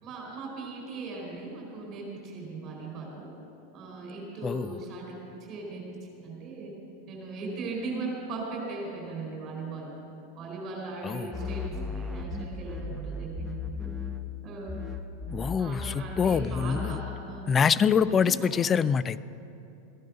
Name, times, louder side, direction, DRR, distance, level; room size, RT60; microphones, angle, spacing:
voice 1, 0.0-3.3 3.7-6.7 7.1-9.9 10.3-11.6 11.9-13.9 14.4-14.8 15.6-17.5 18.0-18.5, right 3 dB, 35° right, -1 dB, 4.5 m, -38 dB
sound 1, 11.3-14.4 14.7-17.2, left 4 dB, 5° right, 1.0 m, -35 dB
voice 2, 15.3-17.0 17.5-19.2, left 6 dB, 25° left, 16 dB, 0.4 m, -25 dB
15.5 x 10.5 x 6.6 m, 2.7 s
figure-of-eight pair, 90°, 0 cm